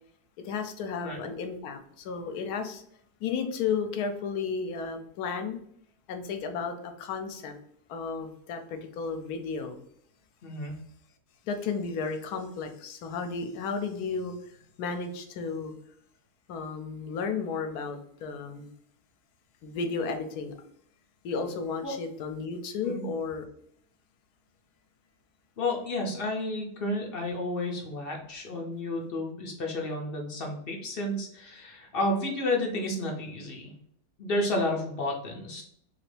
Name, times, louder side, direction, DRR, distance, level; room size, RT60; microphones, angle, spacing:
voice 1, 0.4-2.8 3.2-5.6 6.1-7.5 7.9-9.8 11.4-15.7 16.5-18.7 19.6-20.5 21.2-23.4, left 5 dB, 80° left, 6 dB, 1.1 m, -33 dB
voice 2, 10.4-10.9 21.8-22.0 22.8-23.0 25.6-33.7 34.2-35.6, left 1 dB, 55° left, 0 dB, 0.6 m, -31 dB
2.8 x 2.5 x 3.2 m, 0.68 s
omnidirectional pair, 1.7 m